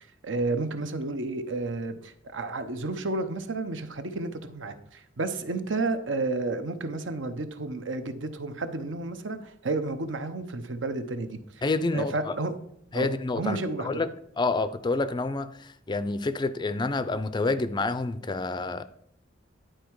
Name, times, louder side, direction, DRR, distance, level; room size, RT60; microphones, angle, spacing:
voice 1, 0.2-11.4 11.9-12.5 12.9-13.1 13.4-14.0, right 3 dB, 70° right, 0.8 m, -31 dB
voice 2, 11.6-12.3 12.9-14.1 14.4-18.8, left 3 dB, 25° left, 0.4 m, -28 dB
10.5 x 4.5 x 4.6 m
head